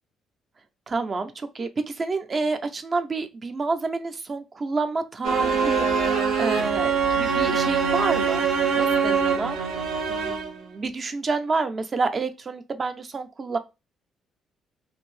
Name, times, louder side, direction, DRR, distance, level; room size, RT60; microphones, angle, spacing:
voice 1, 0.9-8.5 8.8-9.6 10.1-13.6, right 3 dB, 30° right, 0.4 m, -29 dB
sound 1, 5.2-10.7, right 5 dB, 80° right, 0.7 m, -23 dB
2.7 x 2.6 x 3.1 m
cardioid pair, 130°, 0 cm